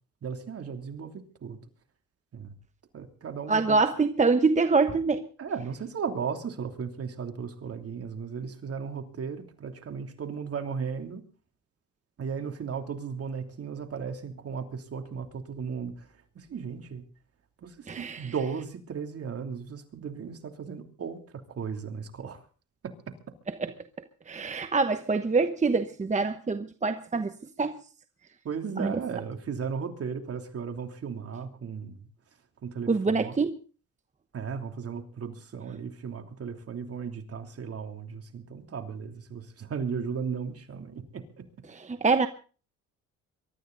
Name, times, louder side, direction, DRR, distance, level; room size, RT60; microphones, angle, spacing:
voice 1, 0.2-1.6 2.3-2.5 2.9-3.8 5.4-11.2 12.2-17.0 17.6-22.5 22.8-23.3 28.4-32.1 32.6-33.4 34.3-41.5, right 6 dB, 50° right, 3.0 m, -36 dB
voice 2, 3.5-5.3 17.9-18.2 24.3-27.3 27.6-27.8 28.8-28.9 32.9-33.5 41.9-42.3, right 4 dB, 25° right, 1.1 m, -25 dB
23.5 x 13.0 x 3.9 m
cardioid pair, 90°, 30 cm